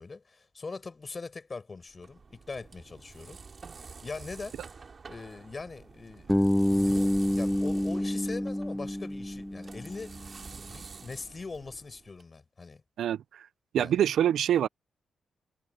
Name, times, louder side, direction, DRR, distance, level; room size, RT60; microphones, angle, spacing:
voice 1, 0.0-3.4 4.0-4.6 5.1-10.2 10.6-12.8 13.8-14.0, left 4 dB, 35° left, 6.4 m, -41 dB
sound 1, 1.9-12.2, right 4 dB, 45° right, 2.5 m, -48 dB
Bass guitar, 6.3-10.2, left 1 dB, 5° left, 0.4 m, -28 dB
voice 2, 13.0-13.5 13.7-14.7, right 10 dB, 85° right, 0.5 m, -25 dB
cardioid pair, 80°, 0 cm